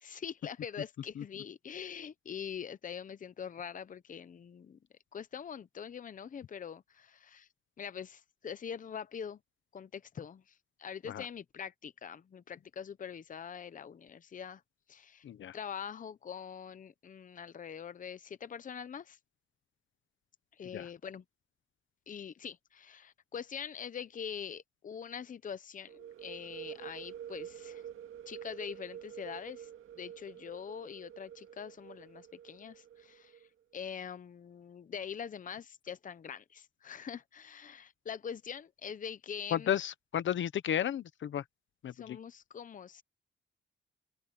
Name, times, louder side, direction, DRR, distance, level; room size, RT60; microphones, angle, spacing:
voice 1, 0.0-4.8 5.1-7.5 7.8-9.4 9.7-14.6 14.9-15.2 15.5-19.2 20.5-21.2 22.1-27.9 28.3-29.7 29.9-33.5 33.7-39.7 41.9-43.0, left 7 dB, 40° left, 0.8 m, -44 dB
voice 2, 15.2-15.6 20.7-20.9 39.5-41.4 41.8-42.2, left 10 dB, 65° left, 0.9 m, -33 dB
sound 1, 25.9-33.5, right 10 dB, 80° right, 2.0 m, -48 dB
open air
cardioid pair, 130°, 21 cm